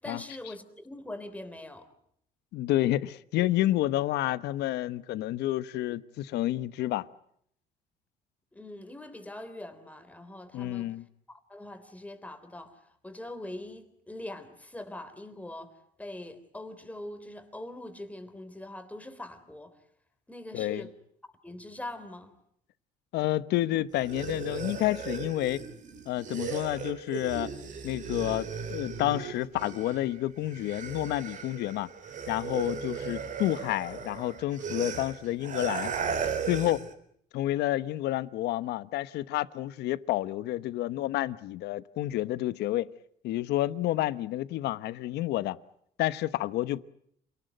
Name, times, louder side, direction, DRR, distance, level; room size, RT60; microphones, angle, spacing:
voice 1, 0.0-1.9 8.5-10.9 11.3-15.7 16.0-19.8 20.3-20.9 21.4-22.4 32.9-33.0, left 1 dB, 10° left, 3.5 m, -42 dB
voice 2, 2.5-7.1 10.5-11.0 20.5-20.9 23.1-25.6 26.1-27.5 27.8-31.9 32.3-35.9 36.5-36.9 37.3-42.9 43.2-45.6 46.0-46.8, left 15 dB, 80° left, 1.0 m, -29 dB
sound 1, 23.9-30.1 30.4-36.9, right 6 dB, 50° right, 3.7 m, -36 dB
27.5 x 19.0 x 9.2 m
cardioid pair, 110°, 17 cm